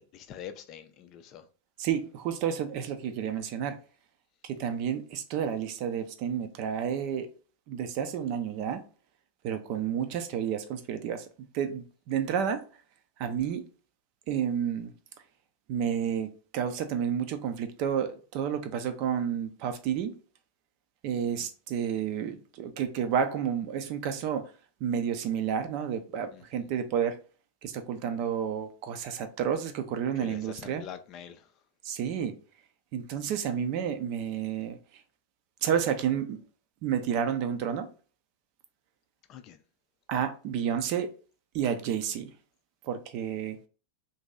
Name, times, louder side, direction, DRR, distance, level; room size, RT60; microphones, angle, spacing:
voice 1, 0.0-1.5 21.1-21.5 26.3-26.7 30.2-31.5 39.3-39.6, left 9 dB, 35° left, 0.4 m, -45 dB
voice 2, 1.8-3.8 4.4-7.3 7.7-8.8 9.4-11.3 11.5-12.6 13.2-13.6 14.3-14.9 15.7-20.1 21.0-24.5 24.8-27.2 27.6-30.8 31.8-32.4 32.9-34.8 35.6-36.4 36.8-37.9 40.1-41.1 41.5-42.3 42.8-43.6, right 8 dB, 45° right, 0.5 m, -30 dB
2.9 x 2.7 x 3.6 m
figure-of-eight pair, 90°, 0 cm